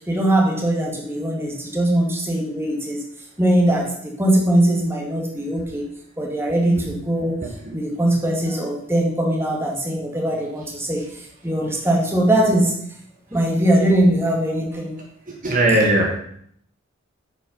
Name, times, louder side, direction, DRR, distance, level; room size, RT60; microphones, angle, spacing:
voice 1, 0.1-3.0 3.4-5.9 6.2-7.4 7.7-12.8 13.3-15.0, right 1 dB, 10° right, -1 dB, 1.9 m, -21 dB
voice 2, 15.4-16.2, right 1 dB, 40° right, 0 dB, 1.4 m, -18 dB
8.8 x 5.6 x 5.5 m, 0.67 s
head